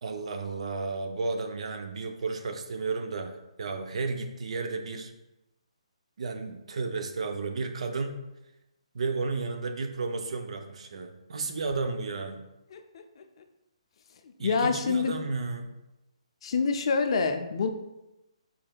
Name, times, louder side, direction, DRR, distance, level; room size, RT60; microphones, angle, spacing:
voice 1, 0.0-5.1 6.2-8.2 8.9-12.4 14.4-15.7, right 4 dB, 65° right, 6 dB, 0.5 m, -33 dB
voice 2, 12.7-13.2 14.4-15.2 16.4-17.7, left 5 dB, 50° left, 7 dB, 0.4 m, -27 dB
4.8 x 4.1 x 2.3 m, 0.95 s
hypercardioid pair, 145°, 4 cm